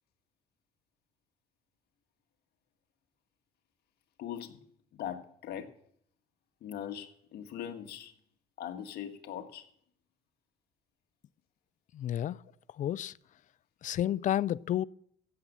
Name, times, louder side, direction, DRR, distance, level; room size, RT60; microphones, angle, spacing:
voice 1, 4.2-4.6 4.9-5.7 6.6-8.1 8.6-9.7, left 10 dB, 70° left, 1.6 m, -40 dB
voice 2, 11.9-12.4 12.8-13.1 13.8-14.8, left 11 dB, 50° left, 0.4 m, -30 dB
15.5 x 7.3 x 6.8 m
cardioid pair, 110°, 17 cm